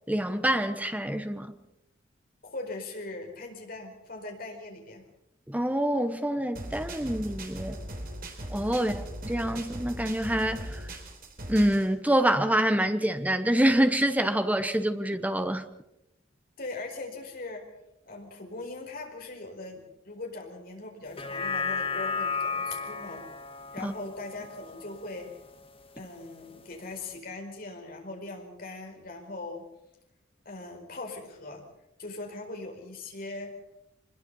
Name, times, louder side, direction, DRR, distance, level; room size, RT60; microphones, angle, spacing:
voice 1, 0.1-1.5 5.5-7.8 8.5-10.8 11.5-15.6 23.8-23.9, right 1 dB, 10° right, 1.2 m, -26 dB
voice 2, 2.4-5.0 8.8-9.0 16.6-17.6 18.1-23.2 23.7-25.3 25.9-29.7 30.4-31.6 32.0-33.6, left 2 dB, 50° left, 4.7 m, -40 dB
sound 1, 6.6-11.9, right 1 dB, 50° right, 3.9 m, -39 dB
sound 2, 21.1-25.6 26.0-26.1, left 5 dB, 30° left, 1.6 m, -34 dB
24.5 x 21.5 x 5.6 m
head